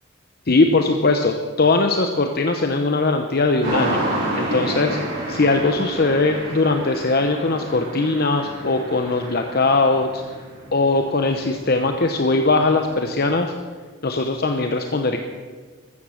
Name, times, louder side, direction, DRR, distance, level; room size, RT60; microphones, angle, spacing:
voice 1, 0.5-4.1 4.4-5.0 5.3-10.2 10.7-13.5 14.0-15.2, left 3 dB, 50° left, 5 dB, 0.8 m, -20 dB
sound 1, 3.6-13.3, right 1 dB, 45° right, 6.5 m, -30 dB
14.5 x 13.5 x 6.4 m, 1.5 s
head